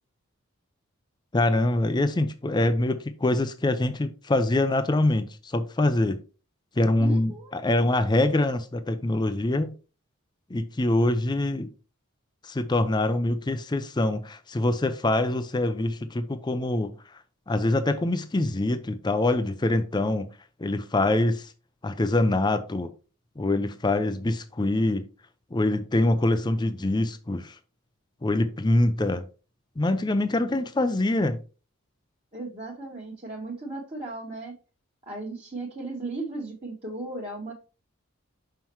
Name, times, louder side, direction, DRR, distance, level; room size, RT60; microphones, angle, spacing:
voice 1, 1.3-6.2 6.8-9.7 10.5-11.7 12.4-16.9 17.5-20.3 20.6-21.5 21.8-22.9 23.4-25.0 25.5-27.6 28.2-29.2 29.8-31.4, left 2 dB, 20° left, 0.5 m, -24 dB
voice 2, 7.0-7.6 32.3-34.5 35.1-37.5, right 2 dB, 30° right, 1.3 m, -36 dB
5.7 x 5.6 x 3.0 m
head